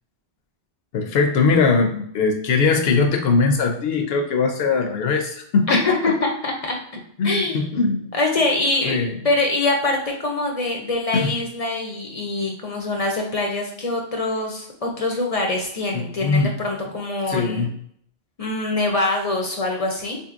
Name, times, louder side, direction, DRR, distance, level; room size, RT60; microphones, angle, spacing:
voice 1, 0.9-5.8 7.2-8.1 8.8-9.1 11.1-11.3 15.9-16.5 17.3-17.7, left 4 dB, 70° left, 4 dB, 0.8 m, -20 dB
voice 2, 5.7-6.8 7.2-7.7 8.1-9.0 9.2-17.7 18.4-20.2, left 2 dB, 45° left, 1 dB, 0.5 m, -24 dB
3.8 x 2.8 x 2.4 m, 0.67 s
omnidirectional pair, 1.1 m